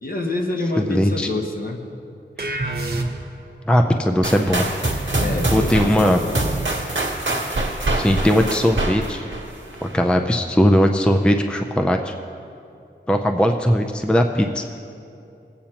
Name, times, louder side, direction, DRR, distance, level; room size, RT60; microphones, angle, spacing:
voice 1, 0.0-1.8 5.2-6.7, left 2 dB, 50° left, 0 dB, 1.2 m, -27 dB
voice 2, 0.9-1.3 3.7-4.6 5.5-6.2 8.0-9.3 9.8-12.1 13.1-14.6, equal, 5° left, 4 dB, 0.5 m, -19 dB
sound 1, 2.4-3.5, right 2 dB, 55° right, 1.0 m, -26 dB
sound 2, 4.2-10.1, right 2 dB, 85° right, 1.3 m, -25 dB
19.0 x 8.5 x 2.9 m, 2.7 s
wide cardioid pair, 80°, 19 cm